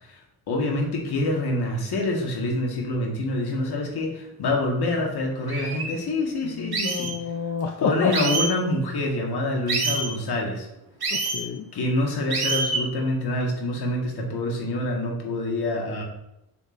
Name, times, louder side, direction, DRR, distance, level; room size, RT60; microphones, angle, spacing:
voice 1, 0.5-7.1 7.8-10.7 11.7-16.0, left 2 dB, 85° left, 0 dB, 1.6 m, -26 dB
sound 1, 5.0-5.1 5.5-5.9 6.7-7.1 8.1-8.5 9.7-10.1 11.0-11.4 12.3-12.8, right 3 dB, 75° right, 1.7 m, -26 dB
voice 2, 6.4-8.3 11.1-11.7, left 5 dB, 50° left, 5 dB, 0.5 m, -29 dB
6.7 x 5.8 x 2.5 m, 0.88 s
wide cardioid pair, 135°, 38 cm